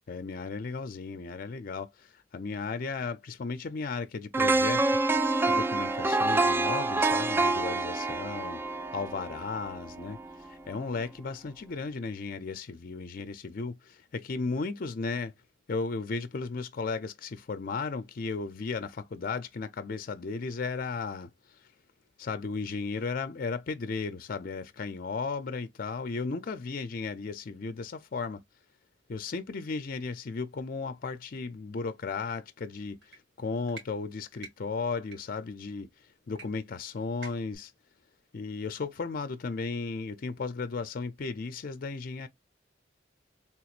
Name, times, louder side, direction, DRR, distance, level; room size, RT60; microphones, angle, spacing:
voice 1, 0.1-4.8 5.5-8.6 8.9-15.3 15.7-21.3 22.2-28.4 29.1-35.9 36.3-37.7 38.3-42.3, left 4 dB, 55° left, 0.5 m, -35 dB
sound 1, 4.3-10.4 10.7-10.9, right 2 dB, 10° right, 0.3 m, -27 dB
sound 2, 33.0-33.2 33.7-33.9 34.4-34.5 35.0-35.2 36.4-36.5 36.7-36.8 37.2-37.6, right 4 dB, 70° right, 1.9 m, -46 dB
3.4 x 3.0 x 2.4 m
head